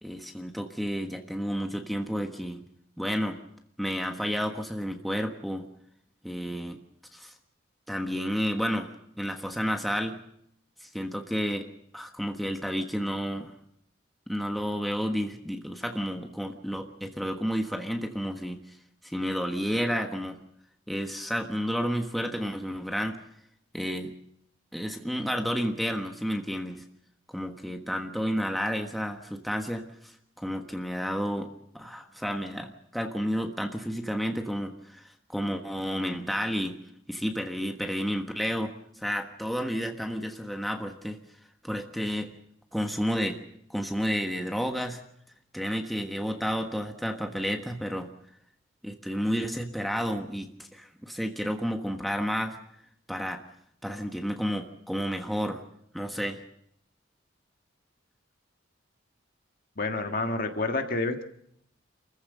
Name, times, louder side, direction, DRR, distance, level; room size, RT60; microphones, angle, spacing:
voice 1, 0.0-2.6 3.0-3.4 3.8-5.7 6.2-6.8 7.1-7.3 7.9-8.9 9.2-10.2 10.8-11.7 11.9-13.6 14.3-18.6 19.0-20.4 20.9-23.2 23.7-24.1 24.7-26.8 27.3-31.5 31.7-36.8 37.1-41.2 41.6-42.3 42.7-43.4 43.7-45.0 45.5-48.1 48.8-52.6 53.1-53.4 53.8-55.6 55.9-56.4, equal, ahead, 4 dB, 1.4 m, -31 dB
voice 2, 59.8-61.2, left 3 dB, 45° left, 5 dB, 1.7 m, -29 dB
28.0 x 15.0 x 6.7 m, 0.72 s
head